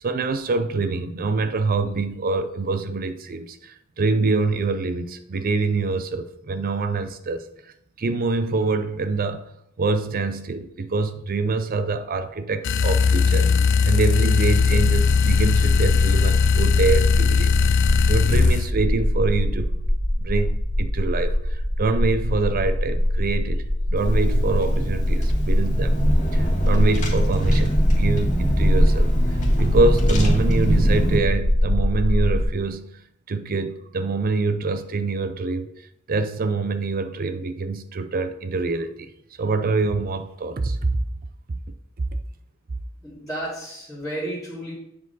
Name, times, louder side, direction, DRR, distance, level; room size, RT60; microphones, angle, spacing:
voice 1, 0.0-7.4 8.0-9.4 9.8-13.5 13.8-17.6 18.1-19.8 20.2-23.6 23.9-26.0 26.3-32.9 33.3-35.7 36.1-39.1 39.4-41.0, right 3 dB, 45° right, 0.5 m, -25 dB
sound 1, 12.6-18.7, left 5 dB, 60° left, 0.4 m, -19 dB
sound 2, 18.5-32.4, equal, 25° right, 1.1 m, -22 dB
Car / Engine, 24.0-31.2, right 1 dB, 35° left, 1.7 m, -27 dB
voice 2, 43.0-44.7, right 1 dB, 5° left, 2.1 m, -32 dB
8.1 x 4.8 x 4.0 m
head